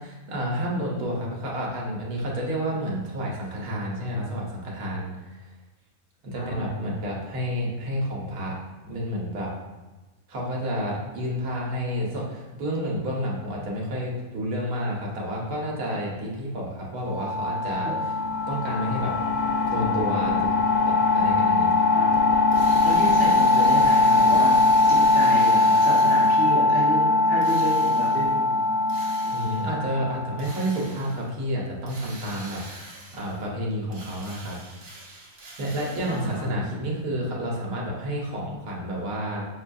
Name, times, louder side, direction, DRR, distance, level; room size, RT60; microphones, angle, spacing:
voice 1, 0.0-5.4 6.2-8.5 8.9-9.5 10.3-17.9 18.5-19.1 19.7-20.5 20.8-21.8 29.3-32.8 33.1-34.6 35.6-39.5, equal, 80° right, -3 dB, 1.4 m, -30 dB
voice 2, 6.3-6.8 17.8-18.0 21.9-22.4 22.8-24.5 24.9-28.6 29.2-29.6 36.1-36.8, right 1 dB, 5° right, -8 dB, 0.9 m, -31 dB
sound 1, 17.1-30.5, left 3 dB, 80° left, 1.1 m, -21 dB
Drill, 22.5-26.7 27.4-28.4 28.9-29.7 30.4-31.3 31.9-33.5 33.9-36.5, right 2 dB, 50° right, 1.0 m, -44 dB
6.2 x 2.3 x 2.5 m, 1.2 s
omnidirectional pair, 1.5 m